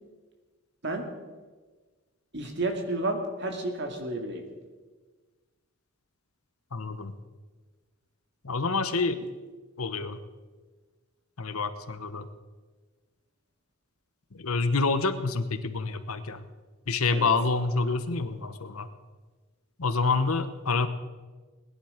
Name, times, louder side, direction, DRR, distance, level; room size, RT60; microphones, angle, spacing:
voice 1, 2.3-4.4 17.1-17.3, right 2 dB, 50° right, 4 dB, 2.3 m, -31 dB
voice 2, 6.7-7.1 8.4-9.2 9.8-10.2 11.4-12.3 14.3-16.5 16.9-18.9 19.8-20.9, left 4 dB, 80° left, 11 dB, 1.1 m, -27 dB
20.5 x 11.0 x 5.1 m, 1.3 s
head